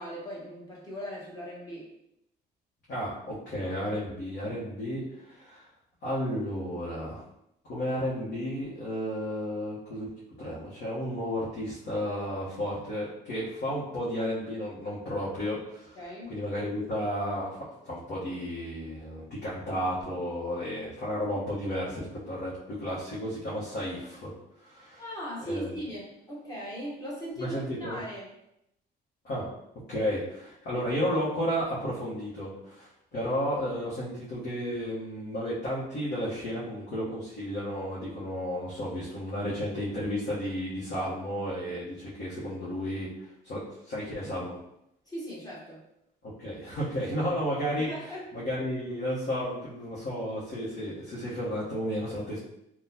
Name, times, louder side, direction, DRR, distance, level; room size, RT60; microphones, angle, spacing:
voice 1, 0.0-1.9 15.9-16.3 25.0-28.3 45.0-45.8 47.7-48.3, equal, 20° left, -5 dB, 1.2 m, -39 dB
voice 2, 2.9-5.6 6.0-7.2 7.6-10.1 10.4-16.0 16.3-24.3 24.6-25.0 25.5-25.7 27.4-28.0 29.2-29.5 29.9-44.6 46.4-47.9 48.3-52.4, equal, 65° left, -9 dB, 1.1 m, -33 dB
3.8 x 2.3 x 2.8 m, 0.80 s
cardioid pair, 130°, 18 cm